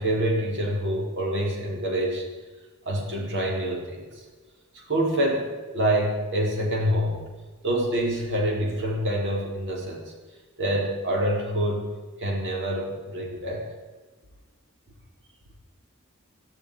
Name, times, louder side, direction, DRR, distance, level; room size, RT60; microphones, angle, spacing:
voice 1, 0.0-2.2 2.8-4.2 4.7-7.2 7.6-10.1 10.6-11.9 12.2-13.6, right 1 dB, 60° right, -1 dB, 5.2 m, -26 dB
17.5 x 15.0 x 5.4 m, 1.3 s
head